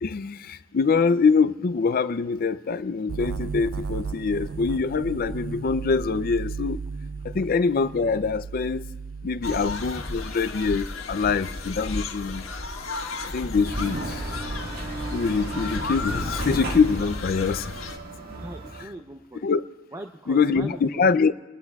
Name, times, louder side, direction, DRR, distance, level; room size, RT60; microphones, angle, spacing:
voice 1, 0.0-6.8 7.2-8.9 9.2-12.4 13.3-14.4 15.1-17.7 18.8-18.9 19.4-19.6 20.3-21.3, left 5 dB, 45° left, 0.4 m, -24 dB
sound 1, 3.1-9.9, right 5 dB, 75° right, 0.4 m, -35 dB
sound 2, 9.4-18.0, left 3 dB, 70° left, 1.6 m, -34 dB
sound 3, 13.6-18.8, right 1 dB, 45° right, 1.8 m, -34 dB
voice 2, 18.4-19.4 19.9-21.1, right 1 dB, 15° right, 0.7 m, -40 dB
30.0 x 20.5 x 2.3 m
head